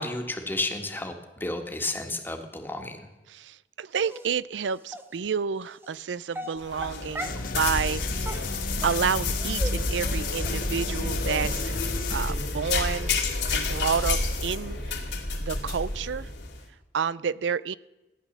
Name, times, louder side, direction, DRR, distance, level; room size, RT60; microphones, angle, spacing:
voice 1, 0.0-3.1, left 2 dB, 10° left, 4 dB, 1.7 m, -32 dB
voice 2, 3.3-8.4 8.8-13.2 13.5-15.1 15.4-16.3 16.9-17.7, right 6 dB, 85° right, 19 dB, 0.5 m, -30 dB
Dog, 3.9-4.3 4.9-5.0 5.8-6.0 6.3-7.5 7.8-7.9 8.2-9.7 10.0-10.2 10.4-10.6 10.9-11.0 11.4-11.5 11.8-11.9 12.2-12.3, right 1 dB, 15° right, 1.2 m, -38 dB
sound 1, 6.6-16.6, left 3 dB, 70° left, 2.8 m, -29 dB
sound 2, 7.2-12.3, left 4 dB, 50° left, 0.7 m, -37 dB
15.0 x 10.5 x 7.3 m, 1.1 s
head